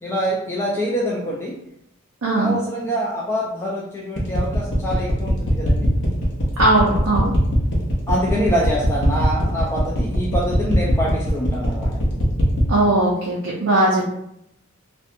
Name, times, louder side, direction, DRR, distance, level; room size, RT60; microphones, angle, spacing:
voice 1, 0.0-1.6 2.3-5.9 8.1-12.0, equal, 10° left, -4 dB, 0.3 m, -25 dB
voice 2, 2.2-2.6 6.6-7.3 12.7-14.1, right 1 dB, 85° right, -4 dB, 0.5 m, -18 dB
sound 1, 4.2-12.7, equal, 55° left, 0.7 m, -22 dB
2.6 x 2.1 x 2.6 m, 0.77 s
head